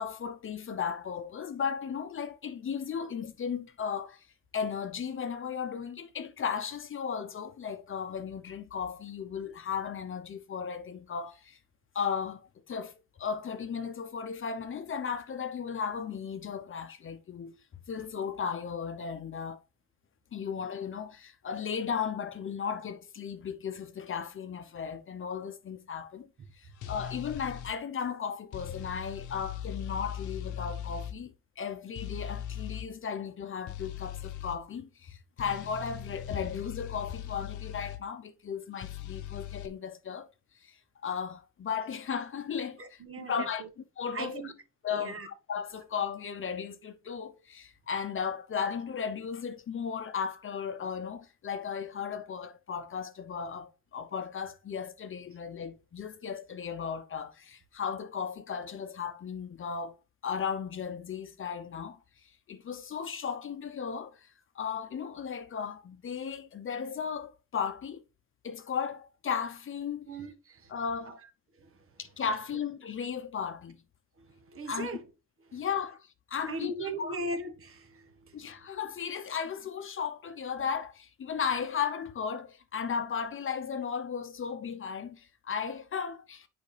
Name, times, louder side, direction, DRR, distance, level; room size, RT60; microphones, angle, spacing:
voice 1, 0.0-4.3 4.5-11.6 11.9-17.5 17.9-19.6 20.3-40.3 40.6-40.8 41.0-43.6 44.0-44.5 44.8-60.0 60.2-62.0 62.5-64.3 64.5-68.0 68.4-70.1 70.7-71.2 72.0-73.8 74.7-75.0 75.5-77.2 78.3-86.5, left 7 dB, 45° left, 0.8 m, -35 dB
sound 1, 26.8-27.7 28.5-31.2 32.0-32.9 33.7-34.6 35.4-38.0 38.8-39.7, left 10 dB, 80° left, 0.9 m, -39 dB
voice 2, 42.8-43.7 44.1-44.5 44.9-45.3 70.1-70.7 71.1-71.2 71.6-71.8 74.2-75.0 75.5-75.6 76.5-78.4, right 2 dB, 45° right, 1.4 m, -39 dB
8.1 x 5.0 x 3.3 m
cardioid pair, 90°, 30 cm